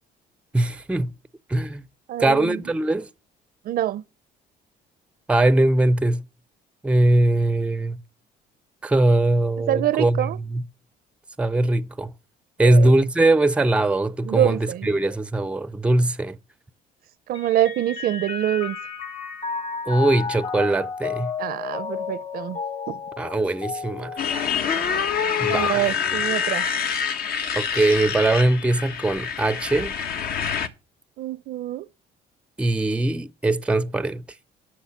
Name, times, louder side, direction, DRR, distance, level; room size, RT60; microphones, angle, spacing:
voice 1, 0.5-1.1 1.5-1.8 2.2-3.1 5.3-6.3 6.8-8.0 8.8-10.6 11.4-12.1 12.6-16.4 19.9-21.3 23.2-24.2 25.4-26.0 27.5-30.0 32.6-34.2, right 2 dB, 5° right, 0.5 m, -21 dB
voice 2, 2.1-2.6 3.7-4.0 9.7-10.4 12.6-12.9 14.2-14.9 17.3-18.8 21.4-22.6 22.9-23.0 25.5-26.7 31.2-31.9, right 13 dB, 60° right, 0.6 m, -25 dB
Mallet percussion, 17.3-25.1, left 5 dB, 45° left, 2.0 m, -32 dB
Motorcycle, 24.2-30.7, left 7 dB, 65° left, 1.3 m, -26 dB
11.5 x 6.4 x 7.1 m
cardioid pair, 110°, 17 cm